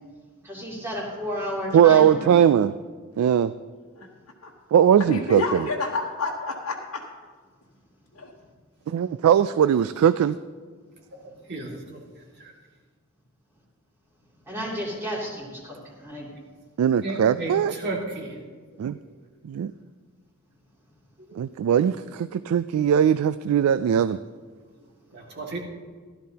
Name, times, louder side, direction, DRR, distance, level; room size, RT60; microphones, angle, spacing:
voice 1, 0.4-2.3 11.2-11.3 14.4-16.3 21.4-21.5 25.1-25.2, equal, 10° right, -5 dB, 2.8 m, -32 dB
voice 2, 1.7-2.7 3.2-3.5 4.7-5.7 8.9-10.4 16.8-17.7 18.8-19.0 19.4-19.7 21.4-24.2, right 9 dB, 85° right, 14 dB, 0.3 m, -20 dB
voice 3, 5.1-7.0 8.1-8.3, left 3 dB, 90° left, -4 dB, 1.2 m, -29 dB
voice 4, 17.0-18.4 21.2-21.4 25.1-25.6, right 2 dB, 55° right, -1 dB, 2.0 m, -32 dB
16.0 x 12.5 x 2.8 m, 1.6 s
head